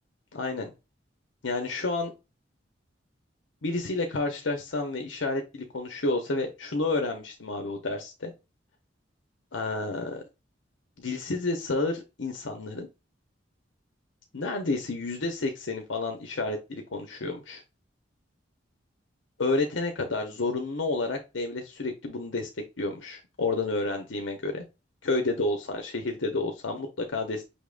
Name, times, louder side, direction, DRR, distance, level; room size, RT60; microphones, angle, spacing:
voice 1, 0.3-0.7 1.4-2.1 3.6-8.3 9.5-10.2 11.0-12.9 14.3-17.6 19.4-22.5 22.8-24.6 25.0-27.4, left 2 dB, 90° left, 4 dB, 0.8 m, -30 dB
5.7 x 3.6 x 2.4 m, 0.27 s
head